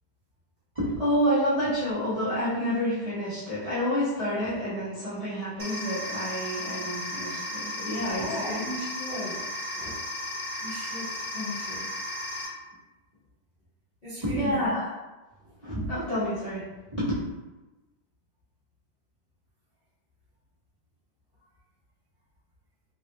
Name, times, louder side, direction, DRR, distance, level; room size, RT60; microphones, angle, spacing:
voice 1, 0.7-8.5 14.2-14.9 15.6-16.6 16.9-17.1, equal, 30° right, -13 dB, 0.6 m, -28 dB
sound 1, 5.6-12.5, left 1 dB, 50° right, 1.2 m, -35 dB
voice 2, 8.1-9.4 9.7-10.0 10.6-11.8 14.0-14.7, left 1 dB, 45° left, -13 dB, 0.6 m, -36 dB
3.3 x 2.4 x 2.8 m, 1.1 s
omnidirectional pair, 2.3 m